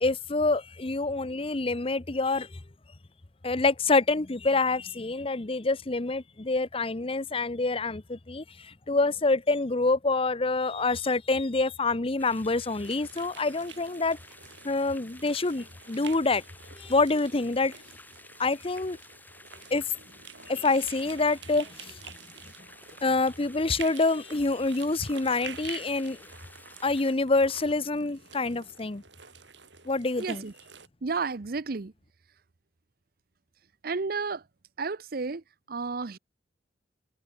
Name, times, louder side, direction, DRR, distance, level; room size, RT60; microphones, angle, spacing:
voice 1, 0.0-2.6 3.4-14.2 14.6-16.4 16.8-17.7 18.4-19.0 19.7-19.9 20.5-22.0 23.0-26.3 26.8-29.0 29.9-30.4, left 3 dB, 30° left, 0.8 m, -26 dB
sound 1, 12.2-27.1, left 2 dB, 10° left, 7.8 m, -53 dB
sound 2, 12.8-30.9, right 7 dB, 85° right, 5.1 m, -48 dB
voice 2, 30.2-30.5 31.0-31.9 33.8-34.4 34.8-36.2, right 4 dB, 55° right, 0.7 m, -32 dB
head